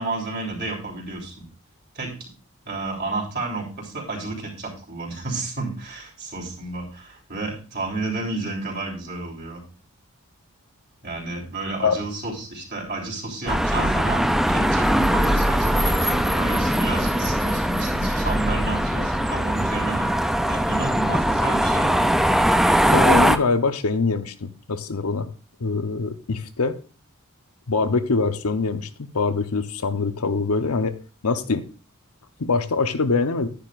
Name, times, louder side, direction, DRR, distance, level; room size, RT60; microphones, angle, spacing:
voice 1, 0.0-1.4 1.9-2.3 2.6-9.6 11.0-22.2, right 3 dB, 50° right, -2 dB, 3.4 m, -31 dB
sound 1, 13.5-23.4, equal, ahead, 0.4 m, -21 dB
voice 2, 22.9-25.3 25.6-26.8 27.7-31.0 31.2-31.6 32.4-33.5, left 4 dB, 85° left, 10 dB, 0.9 m, -23 dB
11.0 x 10.5 x 2.5 m, 0.36 s
head